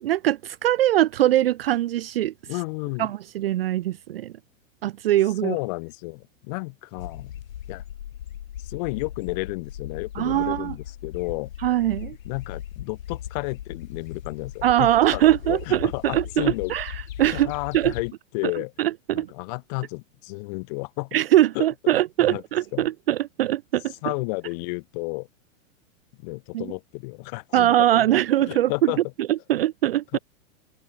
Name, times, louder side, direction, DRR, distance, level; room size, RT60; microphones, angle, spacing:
voice 1, 0.0-2.3 3.0-4.3 4.8-5.6 10.2-10.7 11.6-12.2 14.6-16.9 17.2-17.9 18.8-19.3 21.1-23.9 26.5-26.7 27.5-28.9 29.3-30.2, right 13 dB, 45° right, 0.6 m, -22 dB
voice 2, 2.5-3.1 5.4-7.3 7.7-7.8 8.6-11.5 12.2-15.2 15.5-16.7 17.3-18.7 19.1-21.2 21.5-21.7 22.2-22.4 22.7-22.9 24.0-25.3 26.2-28.1 28.4-29.0 30.1-30.2, left 29 dB, 30° left, 3.3 m, -32 dB
sound 1, 7.0-18.1, left 11 dB, 80° left, 4.2 m, -38 dB
open air
supercardioid pair, 180°, 40 cm